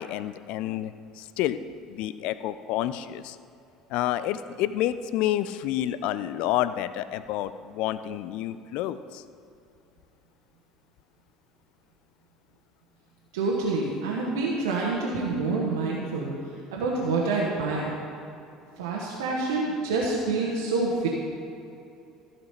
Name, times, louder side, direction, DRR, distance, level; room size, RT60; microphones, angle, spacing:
voice 1, 0.0-1.6 1.9-3.4 3.9-9.2, left 12 dB, 55° left, 14 dB, 0.4 m, -29 dB
voice 2, 13.3-16.3 16.7-17.9 18.8-21.1, right 3 dB, 65° right, -4 dB, 1.3 m, -27 dB
14.5 x 5.9 x 5.8 m, 2.7 s
figure-of-eight pair, 60°, 2 cm